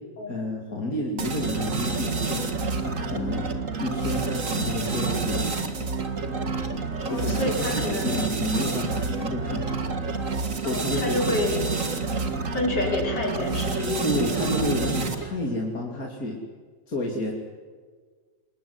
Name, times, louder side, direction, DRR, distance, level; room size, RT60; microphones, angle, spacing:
voice 1, 0.3-3.4 3.8-5.7 7.1-9.8 10.6-11.4 14.0-16.4 16.9-17.3, left 1 dB, 55° left, -1 dB, 3.3 m, -30 dB
sound 1, 1.2-15.4, right 4 dB, 45° right, 2.4 m, -28 dB
voice 2, 7.0-8.2 10.6-11.7 12.5-14.3, left 2 dB, 70° left, -1 dB, 6.1 m, -28 dB
26.5 x 20.5 x 9.7 m, 1.5 s
omnidirectional pair, 1.9 m